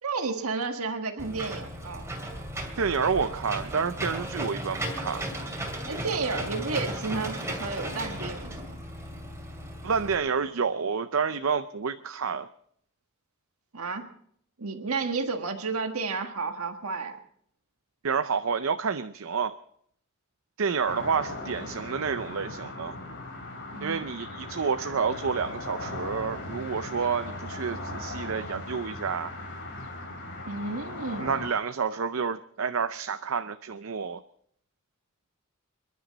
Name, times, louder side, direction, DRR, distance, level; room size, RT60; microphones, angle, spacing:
voice 1, 0.0-2.0 5.9-8.8 13.7-14.0 14.6-17.2 23.7-24.0 30.5-31.4, right 4 dB, 85° right, 5 dB, 1.5 m, -32 dB
Engine / Mechanisms, 1.2-10.2, right 1 dB, 15° right, 2.5 m, -35 dB
voice 2, 2.8-5.2 9.8-12.5 18.0-19.5 20.6-22.9 23.8-29.3 31.2-34.2, right 5 dB, 70° right, 10 dB, 0.6 m, -29 dB
sound 1, 20.8-31.5, left 2 dB, 55° left, 3.4 m, -38 dB
29.0 x 11.0 x 4.1 m, 0.66 s
head